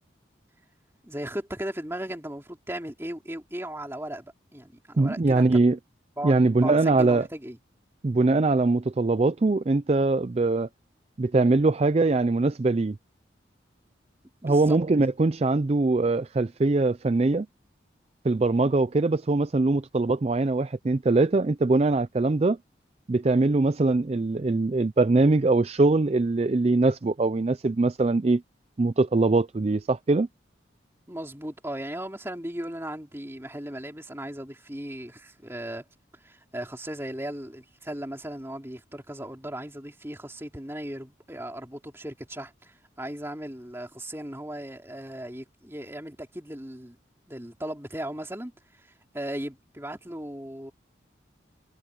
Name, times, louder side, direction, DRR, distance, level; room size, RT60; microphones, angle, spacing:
voice 1, 1.0-5.6 6.2-7.6 14.4-14.8 31.1-35.8 36.2-47.0 47.3-50.7, right 1 dB, 15° right, 3.3 m, -37 dB
voice 2, 5.0-5.8 6.2-7.2 8.0-10.7 11.2-13.0 14.4-17.5 18.2-22.6 23.1-28.4 28.8-30.3, right 3 dB, 35° right, 0.4 m, -22 dB
head